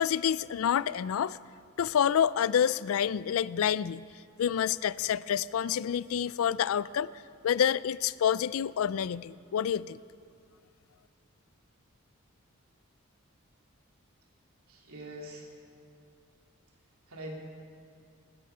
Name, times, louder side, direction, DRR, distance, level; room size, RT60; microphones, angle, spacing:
voice 1, 0.0-1.4 1.8-4.0 4.4-7.1 7.4-10.0, left 8 dB, 70° left, 19 dB, 0.3 m, -28 dB
voice 2, 14.7-15.5 17.1-17.4, right 1 dB, 80° right, 0 dB, 2.6 m, -42 dB
17.0 x 13.0 x 5.6 m, 2.4 s
head